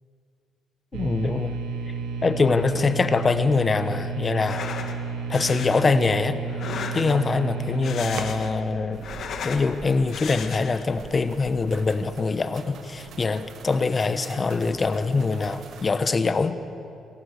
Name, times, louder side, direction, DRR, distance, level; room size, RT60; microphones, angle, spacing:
voice 1, 0.9-1.6 2.2-4.6 5.3-6.4 6.9-9.0 9.4-16.5, left 4 dB, 35° left, 11 dB, 1.1 m, -23 dB
sound 1, 0.9-9.8, right 5 dB, 85° right, 1.5 m, -32 dB
sound 2, 4.3-5.0 5.3-5.8 6.5-7.3 7.7-8.6 8.9-9.7 10.1-10.9, left 6 dB, 65° left, 1.8 m, -35 dB
sound 3, 8.9-15.9, right 5 dB, 70° right, 1.7 m, -45 dB
26.5 x 15.0 x 6.6 m, 2.6 s
cardioid pair, 90°, 0 cm